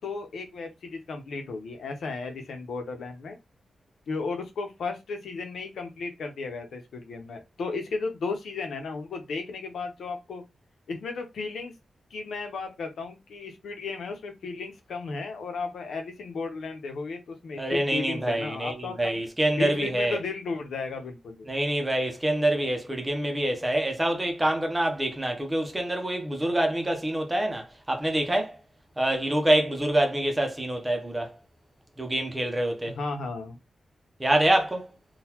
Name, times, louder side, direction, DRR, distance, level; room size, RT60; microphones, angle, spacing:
voice 1, 0.0-3.4 4.1-10.4 10.9-11.7 12.1-19.2 19.5-21.5 32.8-33.6, left 4 dB, 85° left, 0.8 m, -34 dB
voice 2, 17.6-20.2 21.5-28.6 29.0-31.3 32.0-33.0 34.2-34.9, right 1 dB, 10° right, 0.7 m, -26 dB
3.8 x 2.3 x 2.9 m
wide cardioid pair, 180°, 0 cm